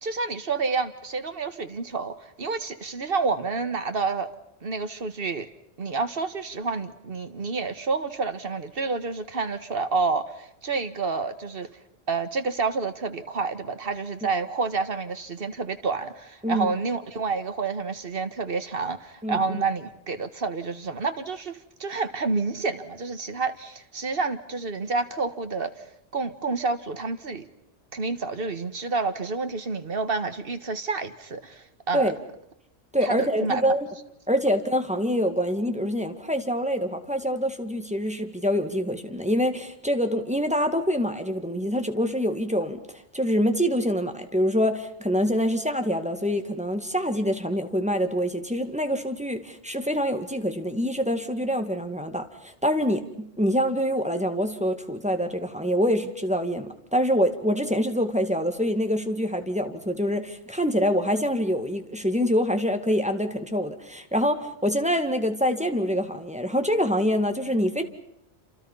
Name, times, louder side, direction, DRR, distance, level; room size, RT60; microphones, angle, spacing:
voice 1, 0.0-4.3 4.6-5.5 5.8-11.7 12.1-25.7 26.1-27.4 27.9-32.1 33.0-33.6, right 4 dB, 50° right, 8 dB, 1.7 m, -29 dB
voice 2, 19.2-19.6 31.9-32.2 32.9-33.9 34.3-42.8 43.1-67.8, equal, 5° right, 6 dB, 1.9 m, -25 dB
29.0 x 27.5 x 5.6 m, 0.74 s
omnidirectional pair, 1.2 m